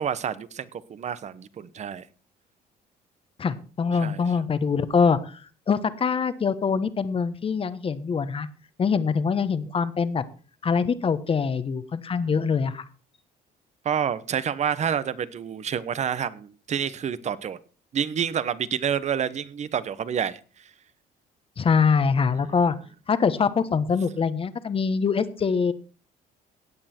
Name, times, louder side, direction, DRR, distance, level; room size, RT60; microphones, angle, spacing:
voice 1, 0.0-2.0 3.9-4.2 12.2-12.4 13.8-17.6 17.9-20.4, right 8 dB, 45° right, 16 dB, 1.0 m, -28 dB
voice 2, 3.4-5.4 5.7-8.5 8.8-10.2 10.6-12.8 21.6-22.7 23.1-25.7, left 5 dB, 35° left, 12 dB, 1.2 m, -24 dB
16.5 x 8.8 x 4.4 m, 0.38 s
cardioid pair, 110°, 17 cm